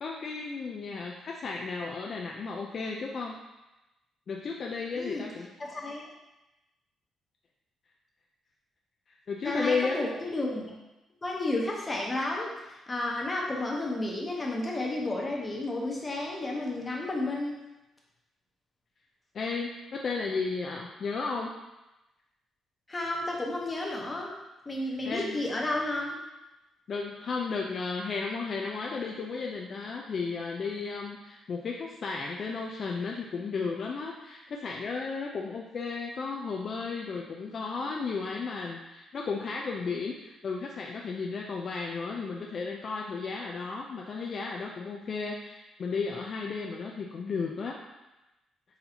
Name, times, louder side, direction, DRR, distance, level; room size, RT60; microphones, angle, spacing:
voice 1, 0.0-3.3 4.3-5.5 9.3-10.0 19.3-21.5 25.1-25.4 26.9-47.8, left 4 dB, 50° left, 0 dB, 0.4 m, -34 dB
voice 2, 5.6-6.1 9.4-10.7 11.2-17.6 22.9-24.3 24.6-26.2, left 2 dB, 25° left, -2 dB, 1.0 m, -32 dB
4.2 x 3.9 x 2.8 m, 1.0 s
cardioid pair, 90°, 0 cm